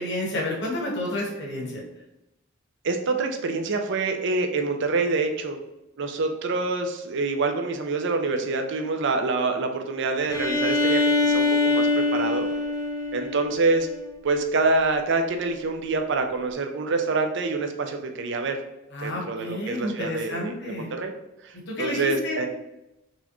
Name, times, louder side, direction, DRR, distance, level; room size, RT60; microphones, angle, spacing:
voice 1, 0.0-1.8 18.9-20.9 21.7-22.4, left 1 dB, 60° left, -2 dB, 1.2 m, -30 dB
voice 2, 2.8-5.6 6.0-12.5 13.1-13.9 14.2-18.6 19.0-21.1 21.4-22.5, right 3 dB, 60° right, 5 dB, 0.5 m, -26 dB
Bowed string instrument, 10.3-14.0, left 3 dB, 15° left, 0.7 m, -24 dB
4.2 x 3.5 x 3.0 m, 0.94 s
head